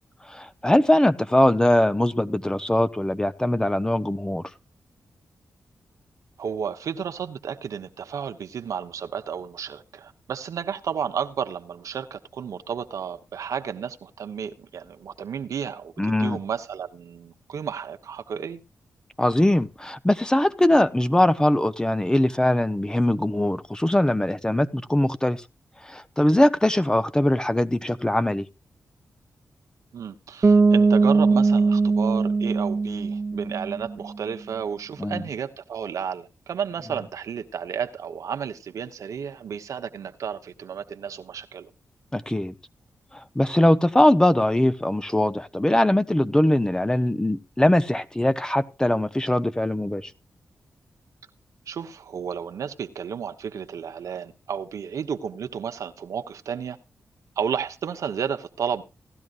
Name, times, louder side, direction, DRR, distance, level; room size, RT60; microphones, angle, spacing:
voice 1, 0.3-4.4 16.0-16.4 19.2-25.4 25.8-28.5 35.0-35.2 42.1-42.5 43.1-50.1, left 1 dB, 15° left, 0.8 m, -21 dB
voice 2, 6.4-18.6 29.9-41.7 51.7-56.8 57.4-58.8, right 7 dB, 80° right, 1.0 m, -32 dB
Bass guitar, 30.4-34.1, right 4 dB, 40° right, 0.7 m, -20 dB
17.0 x 12.0 x 2.5 m
cardioid pair, 50°, 6 cm